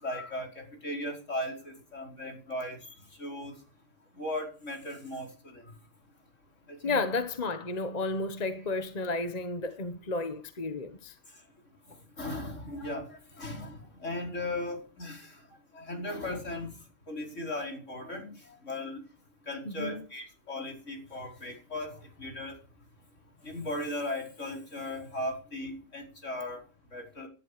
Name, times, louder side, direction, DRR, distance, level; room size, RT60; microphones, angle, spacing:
voice 1, 0.0-3.6 4.2-5.6 6.7-7.0 12.2-15.4 15.7-16.7 17.1-19.0 19.5-22.6 23.4-26.6 26.9-27.3, left 1 dB, 70° left, 5.4 m, -37 dB
voice 2, 6.8-11.2 19.6-20.0, left 3 dB, 35° left, 1.3 m, -32 dB
18.5 x 11.5 x 5.0 m
omnidirectional pair, 1.3 m